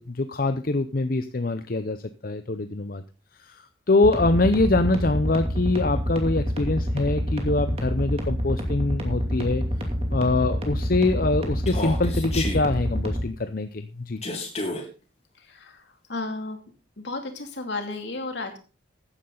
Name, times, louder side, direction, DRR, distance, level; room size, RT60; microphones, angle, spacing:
voice 1, 0.0-2.0 2.2-3.0 3.9-9.6 10.1-14.2, left 2 dB, 50° left, 10 dB, 0.7 m, -24 dB
sound 1, 4.0-13.2, equal, 30° right, 2.6 m, -27 dB
Human voice, 11.7-12.6 14.2-14.8, left 2 dB, 35° left, 3.7 m, -30 dB
voice 2, 15.3-16.6 17.0-18.6, left 2 dB, 70° left, 5 dB, 2.7 m, -33 dB
14.0 x 10.0 x 3.9 m, 0.33 s
head